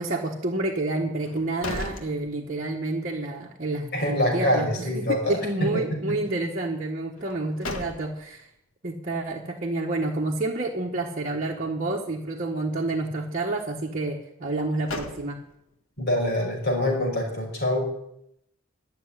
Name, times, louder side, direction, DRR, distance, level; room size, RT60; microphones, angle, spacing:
voice 1, 0.0-8.5 8.8-15.4, right 2 dB, 40° right, -2 dB, 1.3 m, -29 dB
sound 1, 1.2-2.9 3.3-3.4 7.2-8.4 14.5-15.7, left 2 dB, 85° left, 1.7 m, -37 dB
voice 2, 3.9-6.2 16.0-18.0, left 1 dB, 55° left, 0 dB, 5.1 m, -25 dB
12.0 x 6.9 x 9.7 m, 0.78 s
head